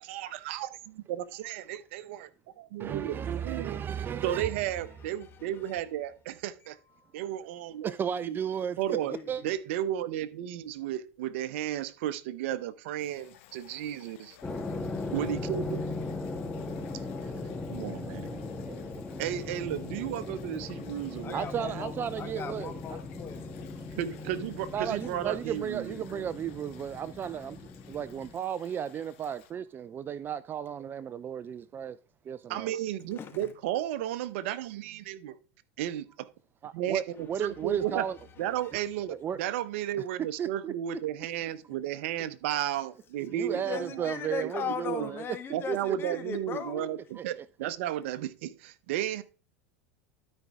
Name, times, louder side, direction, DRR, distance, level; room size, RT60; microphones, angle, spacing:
voice 1, 0.0-2.3 2.6-3.2 3.4-3.8 4.2-6.8 7.1-8.4 8.8-9.1 9.4-14.4 15.1-15.9 17.7-18.4 19.2-21.8 24.0-26.3 32.5-35.3 35.8-36.3 36.7-38.1 38.4-44.1 44.6-45.1 45.5-49.2, right 11 dB, 70° right, 0.9 m, -34 dB
voice 2, 2.8-4.6 7.8-8.8 9.1-9.4 18.6-19.2 21.3-23.0 24.7-27.6 27.9-32.0 32.3-32.7 36.6-38.2 39.2-39.4 40.4-41.0 43.3-45.2 45.7-46.0 47.1-47.4, right 8 dB, 30° right, 0.4 m, -34 dB
voice 3, 4.1-5.8 6.9-7.0 8.9-9.5 21.2-23.7 24.1-24.2 25.0-25.2 33.1-33.6 37.2-38.9 43.5-47.0 47.9-48.1 49.1-49.2, left 7 dB, 35° left, 1.9 m, -40 dB
sound 1, 13.0-29.5, left 11 dB, 70° left, 1.7 m, -56 dB
sound 2, 14.4-28.3, left 3 dB, 10° left, 1.5 m, -38 dB
12.5 x 5.3 x 3.6 m
hypercardioid pair, 100°, 7 cm